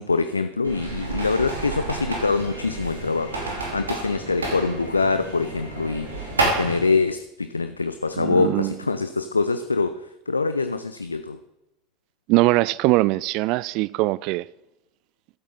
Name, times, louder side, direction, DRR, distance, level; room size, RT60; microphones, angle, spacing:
voice 1, 0.0-3.4 3.7-11.4, left 4 dB, 85° left, 0.4 m, -24 dB
sound 1, 0.6-6.8, right 2 dB, 80° right, 2.6 m, -30 dB
voice 2, 8.2-8.7 12.3-14.4, right 20 dB, 50° right, 0.3 m, -21 dB
14.0 x 8.3 x 3.9 m
figure-of-eight pair, 80°, 0 cm